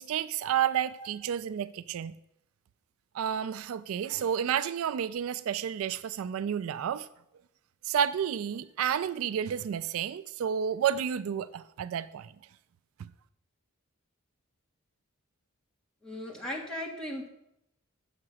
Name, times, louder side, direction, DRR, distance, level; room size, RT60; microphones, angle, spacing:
voice 1, 0.0-2.1 3.1-7.1 7.9-12.3 13.0-13.1, right 8 dB, 70° right, 0.3 m, -31 dB
voice 2, 16.0-17.3, equal, 5° left, 1.6 m, -37 dB
7.6 x 5.9 x 6.2 m
head